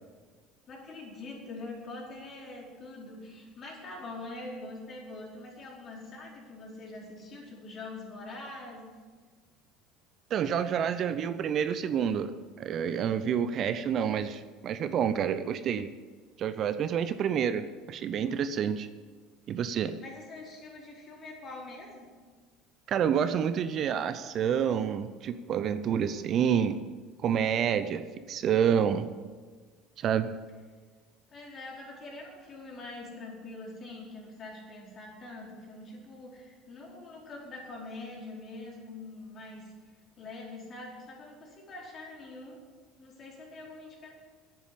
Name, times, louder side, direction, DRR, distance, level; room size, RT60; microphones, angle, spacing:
voice 1, 0.7-8.9 20.0-22.1 31.3-39.7 40.2-42.6 43.0-44.1, left 2 dB, 40° left, -2 dB, 4.7 m, -44 dB
voice 2, 10.3-12.3 12.6-15.9 16.4-18.9 19.5-19.9 22.9-26.8 27.2-29.1 30.0-30.3, right 8 dB, 50° right, 12 dB, 0.7 m, -28 dB
10.5 x 8.9 x 8.7 m, 1.4 s
hypercardioid pair, 70°, 0 cm